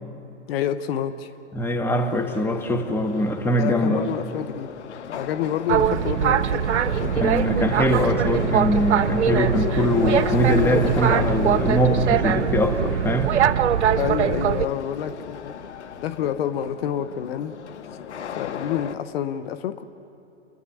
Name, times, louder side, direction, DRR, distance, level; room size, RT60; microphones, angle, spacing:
voice 1, 0.5-1.3 3.6-4.7 5.1-7.1 14.0-15.6 16.0-17.5 18.4-19.8, left 9 dB, 55° left, 11 dB, 1.0 m, -28 dB
voice 2, 1.5-4.1 7.2-13.3, equal, 5° left, 3 dB, 1.6 m, -22 dB
Subway metro underground, 1.9-18.9, left 8 dB, 75° left, 1.2 m, -34 dB
Boat Water vehicle, 5.7-14.7, right 9 dB, 75° right, 0.7 m, -22 dB
29.5 x 11.0 x 9.8 m, 2.8 s
hypercardioid pair, 120°, 35 cm